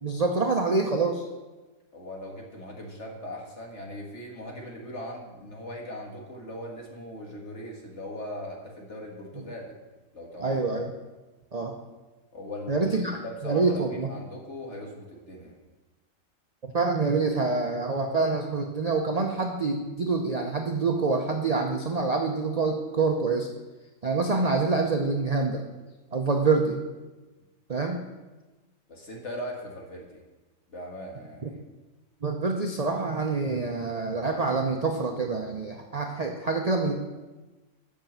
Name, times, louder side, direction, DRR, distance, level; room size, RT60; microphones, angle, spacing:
voice 1, 0.0-1.3 10.4-10.9 11.5-11.7 12.7-13.2 13.4-14.1 16.7-23.5 24.0-25.6 26.1-26.8 27.7-28.1 31.4-31.5 32.2-36.9, right 4 dB, 45° right, 2 dB, 0.5 m, -26 dB
voice 2, 1.9-9.7 10.1-10.6 12.3-12.9 13.2-15.5 28.9-30.2 30.7-31.6, left 1 dB, 45° left, 0 dB, 1.9 m, -39 dB
8.0 x 6.1 x 7.3 m, 1.2 s
omnidirectional pair, 1.8 m